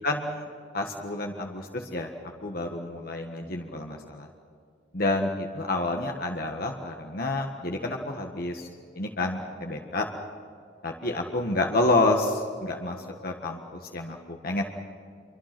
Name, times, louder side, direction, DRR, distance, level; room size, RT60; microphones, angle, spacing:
voice 1, 0.0-0.5 0.7-2.1 2.4-4.3 4.9-8.7 8.9-10.1 10.8-13.0 13.2-14.6, left 2 dB, 55° left, 2 dB, 1.6 m, -29 dB
27.5 x 24.0 x 6.1 m, 2.3 s
head